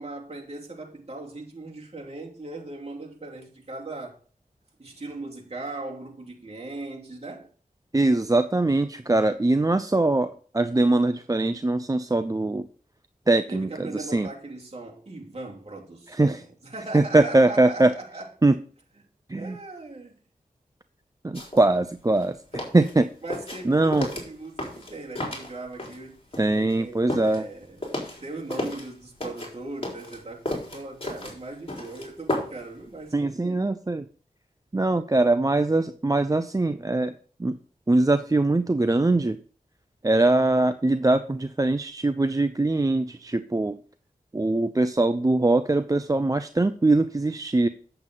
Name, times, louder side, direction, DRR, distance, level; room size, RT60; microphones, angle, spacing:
voice 1, 0.0-4.2 4.8-7.5 13.5-18.3 19.3-20.2 23.2-26.2 26.5-33.6, right 2 dB, 45° right, 2.9 m, -39 dB
voice 2, 7.9-12.7 13.3-14.3 16.1-16.4 16.9-17.9 18.4-18.6 19.3-19.6 21.2-23.1 23.7-24.1 26.4-27.4 33.1-34.1 34.7-37.1 37.4-37.6 37.9-39.4 40.0-43.8 44.3-47.7, right 2 dB, 25° right, 0.6 m, -22 dB
sound 1, 21.3-21.6 22.0-26.0 26.3-28.9 29.2-32.7 33.0-33.1, left 1 dB, 40° left, 4.0 m, -33 dB
8.8 x 7.9 x 3.9 m
cardioid pair, 45°, 15 cm